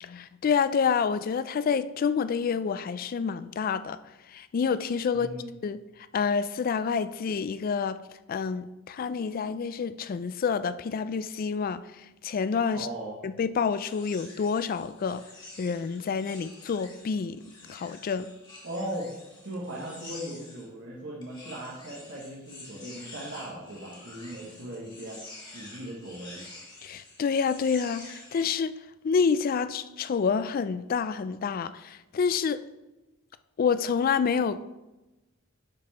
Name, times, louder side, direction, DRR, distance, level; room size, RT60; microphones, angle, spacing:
voice 1, 0.0-4.0 4.3-5.3 5.6-5.8 6.1-8.0 8.3-12.9 13.2-15.2 15.6-17.4 17.7-18.3 26.8-28.8 29.0-32.6 33.6-34.6, left 6 dB, 45° left, 0.3 m, -28 dB
voice 2, 5.1-5.5 12.7-13.2 18.6-19.1 19.4-25.2 25.5-26.4, right 1 dB, 60° right, 1.4 m, -38 dB
sound 1, 13.7-20.7 21.2-28.5, left 2 dB, 25° left, 2.0 m, -48 dB
10.5 x 4.3 x 4.1 m
head